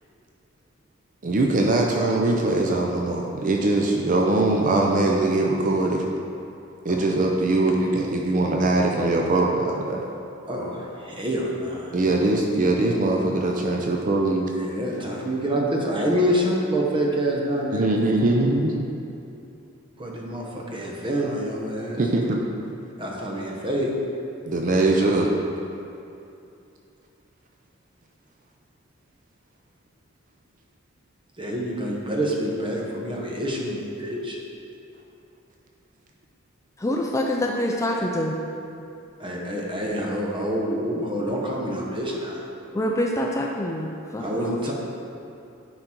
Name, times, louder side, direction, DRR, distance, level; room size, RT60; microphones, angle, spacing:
voice 1, 1.2-6.0 6.8-10.1 11.9-14.5 17.7-18.7 21.9-22.5 24.4-25.3, right 2 dB, 40° right, 0 dB, 0.5 m, -22 dB
voice 2, 10.5-12.0 14.5-17.8 20.0-22.0 23.0-23.9 31.4-34.4 39.2-42.4 44.2-44.7, equal, 25° right, -2 dB, 1.0 m, -27 dB
voice 3, 36.8-38.4 42.7-44.7, left 1 dB, 15° left, 0 dB, 0.4 m, -26 dB
9.6 x 4.0 x 4.4 m, 2.7 s
head